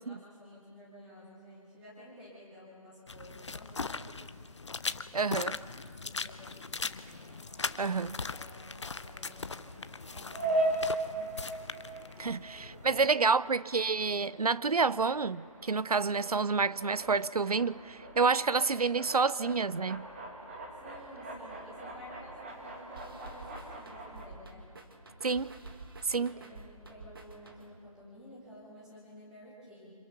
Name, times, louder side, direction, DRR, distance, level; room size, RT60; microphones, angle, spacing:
voice 1, 0.0-5.4 5.9-7.1 7.7-9.7 10.1-11.4 12.2-13.1 20.8-24.7 26.1-29.9, left 1 dB, 5° right, 2.6 m, -53 dB
sound 1, 3.1-13.1, left 4 dB, 50° left, 0.7 m, -40 dB
voice 2, 5.1-5.6 7.8-8.2 12.2-20.1 25.2-25.5 26.0-26.3, right 4 dB, 85° right, 0.6 m, -29 dB
sound 2, 7.0-24.2, right 1 dB, 20° right, 2.0 m, -40 dB
sound 3, 23.0-27.9, right 2 dB, 40° right, 2.1 m, -49 dB
26.0 x 25.5 x 5.8 m
figure-of-eight pair, 170°, 19 cm